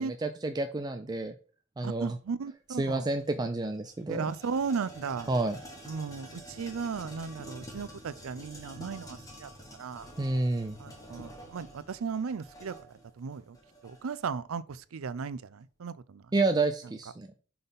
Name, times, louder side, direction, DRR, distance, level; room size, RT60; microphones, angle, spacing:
voice 1, 0.0-1.3 1.8-2.2 2.8-4.2 5.3-5.6 10.2-10.8 16.3-17.3, right 2 dB, 20° right, 0.4 m, -29 dB
voice 2, 1.8-3.1 4.1-5.3 5.9-9.5 9.8-10.1 10.8-13.6 13.8-16.3, right 5 dB, 85° right, 0.5 m, -36 dB
sound 1, 3.2-3.3 3.6-14.3, equal, 15° left, 1.8 m, -48 dB
5.9 x 3.9 x 5.3 m
head